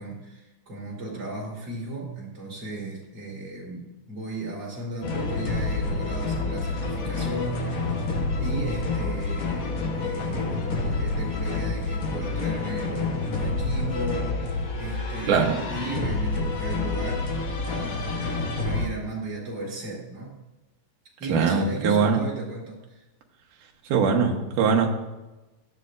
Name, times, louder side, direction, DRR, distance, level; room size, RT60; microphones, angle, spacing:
voice 1, 0.0-8.0 8.4-17.4 17.7-20.4 21.2-23.0, right 2 dB, 35° right, -4 dB, 4.5 m, -35 dB
sound 1, 5.0-18.9, left 3 dB, 90° left, 0.7 m, -28 dB
voice 2, 15.3-15.6 21.3-22.2 23.9-24.9, right 6 dB, 80° right, 2 dB, 2.8 m, -21 dB
16.5 x 12.0 x 2.6 m, 1.1 s
omnidirectional pair, 3.6 m